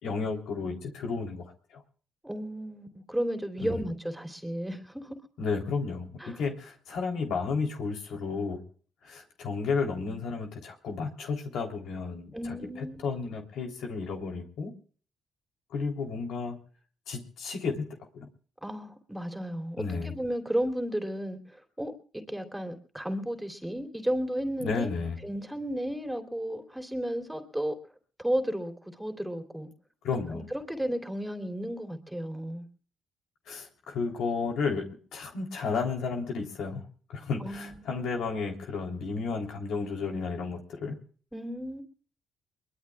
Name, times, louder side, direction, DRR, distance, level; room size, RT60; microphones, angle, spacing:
voice 1, 0.0-1.4 1.7-1.8 3.6-3.8 5.4-8.6 9.0-14.7 15.7-16.6 17.1-17.9 18.1-18.3 19.8-20.2 24.6-25.2 30.0-30.5 33.5-34.9 35.1-36.9 37.1-41.0, left 4 dB, 75° left, 3.4 m, -32 dB
voice 2, 2.2-5.2 6.2-6.4 12.3-13.1 18.6-24.9 25.2-27.7 28.2-29.7 30.3-32.7 37.4-37.9 41.3-41.8, equal, 5° right, 3.1 m, -33 dB
23.0 x 22.0 x 2.4 m
cardioid pair, 90°, 0 cm